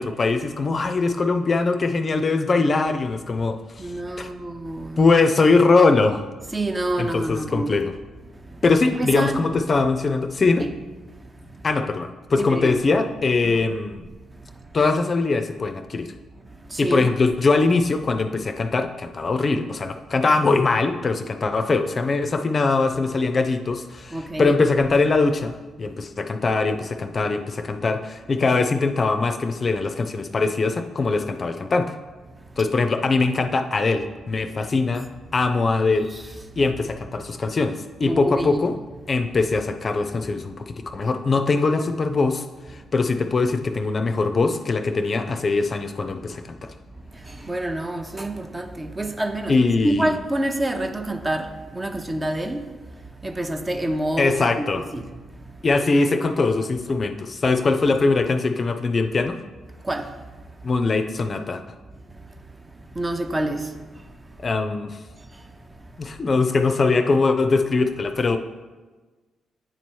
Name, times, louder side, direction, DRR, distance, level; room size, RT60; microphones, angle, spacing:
voice 1, 0.0-3.9 4.2-4.3 5.0-6.2 7.0-7.9 8.6-10.7 11.6-14.0 14.7-16.1 16.8-31.9 32.6-35.1 35.3-36.1 36.6-38.7 39.1-46.7 49.5-50.2 54.2-54.8 55.6-59.4 60.6-61.6 64.4-65.0 66.0-68.4, left 3 dB, 45° left, 0.5 m, -22 dB
voice 2, 3.8-5.1 6.5-7.7 8.9-9.4 10.6-10.7 12.4-12.8 13.4-13.6 16.7-17.1 24.1-24.5 36.1-36.2 38.1-38.8 47.2-49.6 49.8-52.6 53.2-54.6 54.9-55.1 59.8-60.1 63.0-63.7, right 1 dB, 25° right, 0.7 m, -27 dB
8.9 x 3.0 x 4.6 m
supercardioid pair, 50°, 0 cm